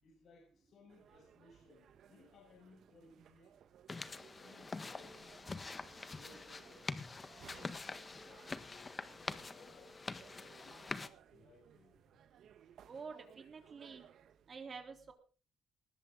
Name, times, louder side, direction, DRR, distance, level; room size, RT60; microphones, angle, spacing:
voice 1, 0.0-3.6 3.9-5.8 6.1-7.0 7.4-10.0 10.3-10.8 11.3-12.0, left 3 dB, 60° left, 0 dB, 6.7 m, -63 dB
sound 1, 0.9-14.6, right 9 dB, 70° right, 1.5 m, -63 dB
sound 2, 3.9-11.1, left 3 dB, 30° left, 1.5 m, -45 dB
voice 2, 12.9-14.0 14.5-15.1, right 5 dB, 45° right, 5 dB, 3.7 m, -48 dB
20.0 x 14.0 x 3.9 m, 0.37 s
cardioid pair, 90°, 0 cm